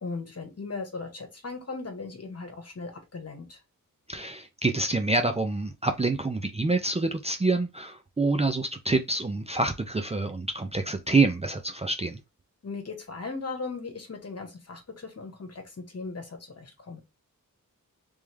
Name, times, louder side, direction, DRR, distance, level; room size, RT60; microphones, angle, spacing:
voice 1, 0.0-3.6 12.6-17.0, left 4 dB, 45° left, 1.2 m, -38 dB
voice 2, 4.1-12.2, right 3 dB, 20° right, 0.5 m, -27 dB
3.5 x 3.2 x 3.3 m
wide cardioid pair, 125°, 33 cm